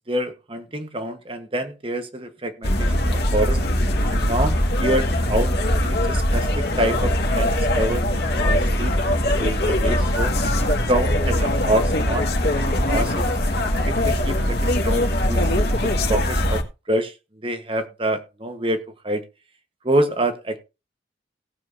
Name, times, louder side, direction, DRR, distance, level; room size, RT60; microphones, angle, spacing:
voice 1, 0.1-3.6 4.1-10.3 10.9-12.2 12.6-13.3 13.9-15.4 15.8-16.6 16.9-17.1 17.4-19.2 19.8-20.6, right 1 dB, 30° right, 8 dB, 1.2 m, -26 dB
sound 1, 2.6-16.6, left 1 dB, 55° left, 1.9 m, -21 dB
18.0 x 7.3 x 2.7 m, 0.29 s
head